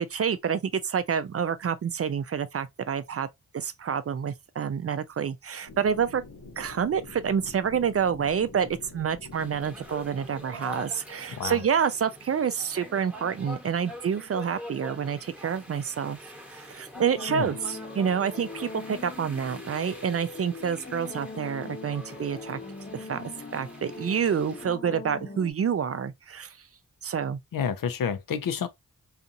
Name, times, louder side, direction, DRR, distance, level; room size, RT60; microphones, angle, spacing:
voice 1, 0.0-3.3 3.5-6.2 6.6-22.6 22.9-26.6 27.0-27.4, right 7 dB, 45° right, 0.4 m, -28 dB
sound 1, 5.7-11.6, left 3 dB, 85° left, 1.0 m, -47 dB
sound 2, 9.3-24.6, left 1 dB, 5° right, 1.0 m, -45 dB
sound 3, 16.9-25.5, left 3 dB, 30° left, 0.9 m, -41 dB
voice 2, 27.5-28.7, left 7 dB, 70° left, 0.6 m, -29 dB
2.6 x 2.5 x 2.6 m
cardioid pair, 45°, 35 cm